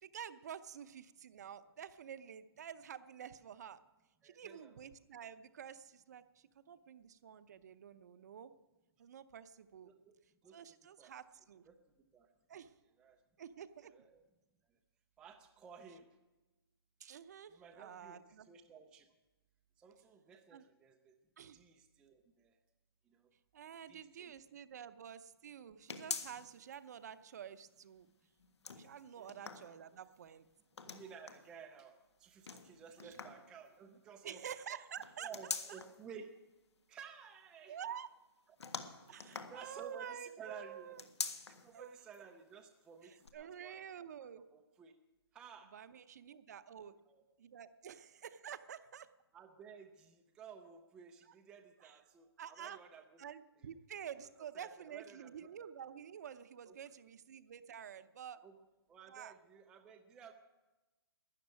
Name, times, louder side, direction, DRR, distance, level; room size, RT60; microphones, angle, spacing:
voice 1, 0.0-3.8 4.2-8.5 9.0-9.9 10.5-11.6 12.5-12.7 13.4-13.9 17.0-18.5 20.5-20.6 21.4-21.6 23.5-28.1 28.7-30.5 33.0-33.2 34.2-35.3 37.7-38.1 39.1-41.1 41.7-42.0 43.0-44.4 45.7-47.0 47.4-49.1 51.8-52.0 52.4-52.8 53.2-58.4 59.1-59.3, right 8 dB, 40° right, 13 dB, 0.7 m, -49 dB
voice 2, 4.2-4.8 9.8-10.1 10.4-11.2 11.7-11.8 12.1-12.3 13.0-13.2 13.8-14.2 14.7-14.8 15.2-16.1 17.5-19.1 19.8-21.1 21.5-22.6 23.1-23.3 23.9-24.3 29.2-29.4 30.8-34.4 35.2-36.3 36.9-37.8 39.1-41.0 41.6-43.8 44.2-45.0 45.3-45.7 47.1-47.2 49.3-53.2 53.6-53.7 54.4-55.5 56.6-56.8 58.4-58.6 58.9-60.3, right 6 dB, 5° right, 3 dB, 0.4 m, -55 dB
sound 1, 25.9-26.7 27.1-27.2 28.4-30.2 30.7-31.5 32.5-33.5 35.0-36.0 38.6-40.1 40.9-41.7 42.1-42.2 43.2-43.3, left 5 dB, 90° left, 1.6 m, -45 dB
12.5 x 9.9 x 9.6 m, 1.1 s
hypercardioid pair, 165°, 14 cm